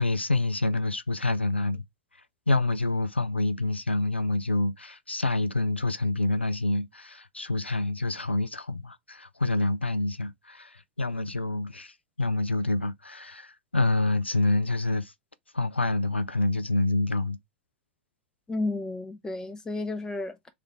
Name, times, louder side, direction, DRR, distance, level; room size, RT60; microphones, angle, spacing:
voice 1, 0.0-1.8 2.5-15.1 15.5-17.4, left 2 dB, 90° left, 0.4 m, -27 dB
voice 2, 18.5-20.5, left 2 dB, 10° left, 0.8 m, -32 dB
3.7 x 3.3 x 3.4 m
figure-of-eight pair, 90°, 6 cm